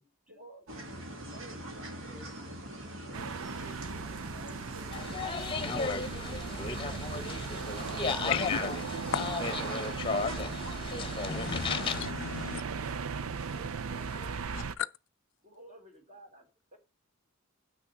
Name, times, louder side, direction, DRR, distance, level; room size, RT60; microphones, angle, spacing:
voice 1, 0.3-2.1 3.0-5.0 9.3-10.7 11.1-12.0 13.5-14.5 15.4-16.8, equal, 40° right, 3.3 m, -54 dB
sound 1, 0.7-12.1, right 1 dB, 65° right, 1.8 m, -43 dB
voice 2, 1.6-2.4 7.0-7.5 13.3-14.0, left 1 dB, 5° right, 1.8 m, -58 dB
sound 2, 3.1-14.7, right 5 dB, 90° right, 0.6 m, -38 dB
sound 3, 4.9-12.1, left 4 dB, 25° left, 0.9 m, -34 dB
voice 3, 8.1-8.6 9.1-9.3 11.3-12.6 14.5-14.9, left 8 dB, 65° left, 0.4 m, -35 dB
7.9 x 6.4 x 5.9 m
head